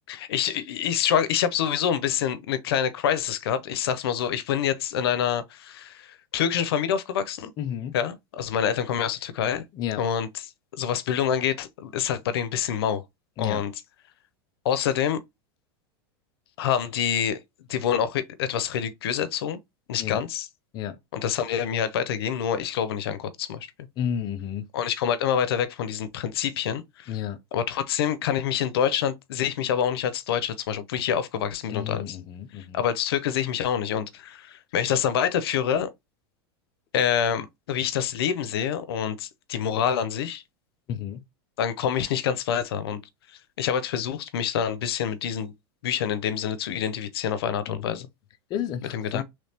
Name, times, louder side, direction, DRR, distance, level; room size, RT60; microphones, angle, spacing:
voice 1, 0.0-7.5 7.9-9.6 10.0-10.3 10.7-13.0 13.4-13.7 14.6-15.2 16.6-17.4 17.7-19.6 19.9-20.5 21.1-23.7 24.7-27.2 27.5-32.2 32.6-35.9 36.9-40.4 41.6-43.0 43.3-45.5 45.8-48.1 48.9-49.2, left 9 dB, 85° left, 0.6 m, -26 dB
voice 2, 7.6-8.0 9.7-10.0 13.4-13.6 20.0-20.2 20.7-21.0 24.0-24.7 27.1-27.4 31.7-32.8 40.9-41.2 47.7-48.0 48.5-49.2, left 9 dB, 35° left, 0.5 m, -31 dB
3.3 x 3.1 x 2.7 m
supercardioid pair, 145°, 13 cm